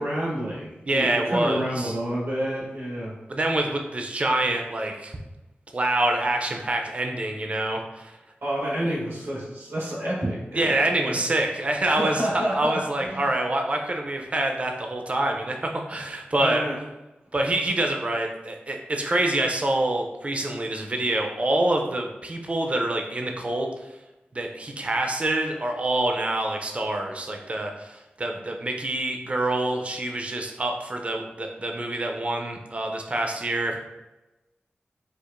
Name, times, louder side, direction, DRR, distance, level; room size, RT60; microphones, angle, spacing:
voice 1, 0.0-3.1 8.4-10.8 11.0-11.2 11.8-12.8 13.1-13.3 16.4-16.8, right 1 dB, 85° right, -5 dB, 1.1 m, -29 dB
voice 2, 0.9-1.9 3.3-5.1 5.7-8.1 10.6-16.6 17.3-23.7 24.3-33.8, right 1 dB, 35° right, 3 dB, 0.4 m, -26 dB
4.4 x 2.4 x 2.5 m, 1.0 s
wide cardioid pair, 75°, 4 cm